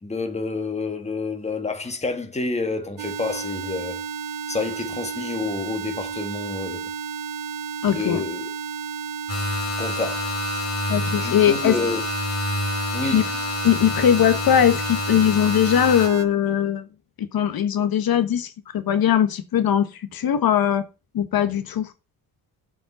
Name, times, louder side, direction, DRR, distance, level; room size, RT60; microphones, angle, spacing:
voice 1, 0.0-4.0 4.5-6.9 7.9-8.5 9.8-10.3 11.1-12.0 12.9-13.3, left 3 dB, 20° left, 1.8 m, -29 dB
sound 1, 3.0-16.2, right 6 dB, 60° right, 1.2 m, -32 dB
voice 2, 7.8-8.2 10.9-11.7 13.1-13.2 13.6-16.8 17.3-20.8 21.1-21.9, left 9 dB, 70° left, 1.2 m, -20 dB
sound 2, 9.3-16.1, left 3 dB, 40° left, 2.4 m, -28 dB
7.6 x 5.4 x 7.1 m
cardioid pair, 125°, 36 cm